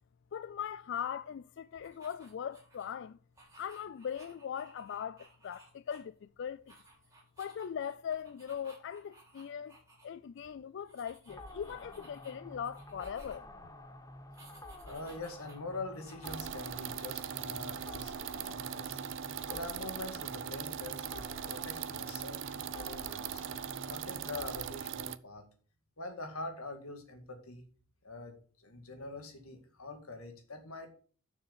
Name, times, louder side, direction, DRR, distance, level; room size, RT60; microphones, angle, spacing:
voice 1, 0.3-3.2 3.6-6.8 7.4-9.7 10.0-13.4, left 8 dB, 55° left, 0.3 m, -40 dB
sound 1, 1.7-2.9 3.3-6.3 6.6-10.1 10.3-10.5 10.8-13.6 14.3-16.5, right 2 dB, 15° right, 3.0 m, -60 dB
sound 2, 11.3-24.7, left 1 dB, 15° left, 0.9 m, -50 dB
voice 2, 14.8-18.1 18.5-19.0 19.5-22.4 22.7-23.4 23.9-25.5 26.0-27.6 28.0-30.9, left 2 dB, 90° left, 2.1 m, -44 dB
sound 3, 16.2-25.2, right 9 dB, 60° right, 0.5 m, -40 dB
7.1 x 6.5 x 6.9 m
head